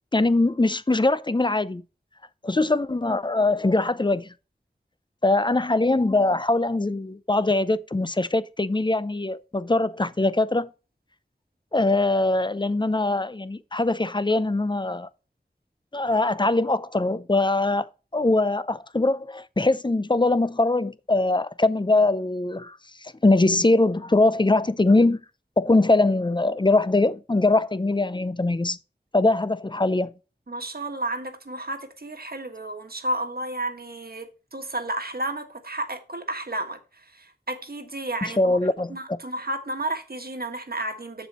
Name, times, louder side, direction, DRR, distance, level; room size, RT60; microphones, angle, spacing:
voice 1, 0.1-1.8 2.4-4.3 5.2-10.7 11.7-15.1 15.9-25.2 25.6-28.8 29.1-30.1 38.2-39.0, left 2 dB, 25° left, 0.5 m, -22 dB
voice 2, 30.5-36.8 37.1-38.6 38.9-41.3, right 1 dB, 60° right, 1.4 m, -32 dB
7.4 x 7.1 x 4.2 m
wide cardioid pair, 45°, 17 cm